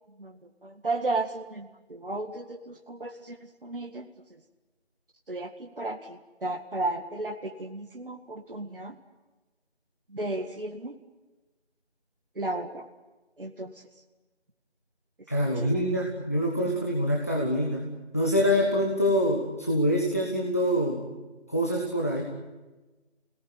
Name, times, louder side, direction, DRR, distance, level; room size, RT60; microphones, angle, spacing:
voice 1, 0.2-4.1 5.3-9.0 10.1-11.0 12.4-12.9 13.4-13.8 15.6-15.9, right 2 dB, 55° right, 3 dB, 1.9 m, -34 dB
voice 2, 15.3-17.9 18.1-21.1 21.5-22.2, equal, 15° left, -1 dB, 1.2 m, -25 dB
26.0 x 18.5 x 9.7 m, 1.2 s
figure-of-eight pair, 170°, 33 cm